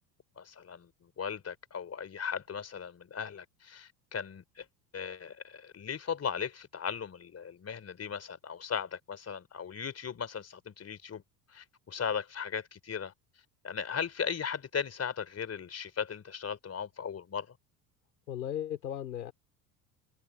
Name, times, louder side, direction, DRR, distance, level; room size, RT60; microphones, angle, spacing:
voice 1, 0.4-4.7 4.9-11.2 11.5-13.1 13.6-17.6, left 7 dB, 30° left, 3.7 m, -37 dB
voice 2, 18.3-19.3, left 10 dB, 80° left, 4.8 m, -36 dB
hypercardioid pair, 70°, 50 cm